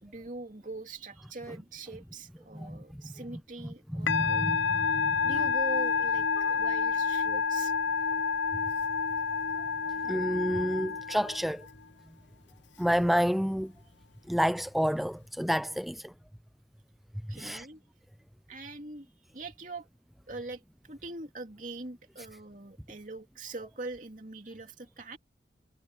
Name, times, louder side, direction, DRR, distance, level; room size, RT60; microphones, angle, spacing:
voice 1, 0.0-4.5 5.2-7.7 17.3-17.8 18.5-19.1 19.3-19.9 20.3-20.6 20.9-25.2, right 2 dB, 45° right, 2.8 m, -42 dB
voice 2, 3.9-5.3 10.0-11.7 12.8-13.7 14.3-16.1 17.3-17.7, equal, ahead, 0.3 m, -29 dB
Musical instrument, 4.1-11.7, left 5 dB, 90° left, 0.8 m, -29 dB
head